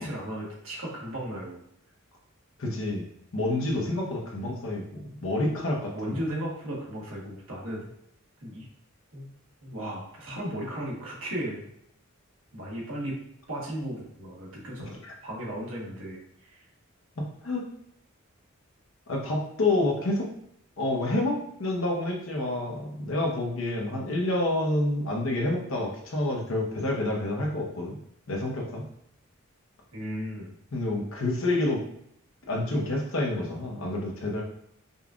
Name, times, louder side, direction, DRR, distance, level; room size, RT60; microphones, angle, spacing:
voice 1, 0.0-1.6 4.2-4.3 5.9-7.9 8.4-8.7 9.1-9.3 9.6-11.7 12.5-13.1 13.5-16.6 29.9-30.5, equal, 65° right, -4 dB, 1.3 m, -35 dB
voice 2, 2.6-3.1 3.3-6.1 15.0-15.2 17.2-17.6 19.1-20.3 20.8-28.0 28.3-28.8 30.7-31.8 32.5-34.4, left 2 dB, 65° left, 0 dB, 0.8 m, -28 dB
5.3 x 2.3 x 2.4 m, 0.73 s
head